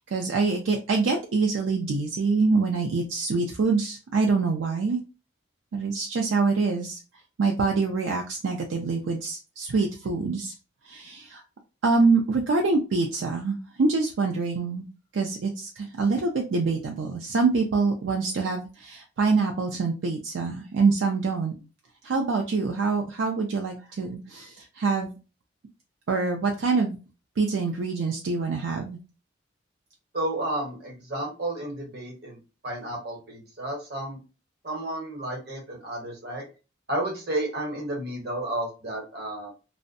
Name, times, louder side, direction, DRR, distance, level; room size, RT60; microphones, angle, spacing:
voice 1, 0.1-5.0 5.7-7.0 7.4-10.5 10.8-11.4 11.8-14.8 15.1-21.5 22.0-25.1 26.1-27.0 27.4-29.0, right 4 dB, 70° right, 2 dB, 0.4 m, -25 dB
voice 2, 30.1-32.4 32.6-34.2 34.6-36.4 36.9-39.5, right 1 dB, 55° right, 1 dB, 0.9 m, -32 dB
2.5 x 2.1 x 2.6 m, 0.32 s
head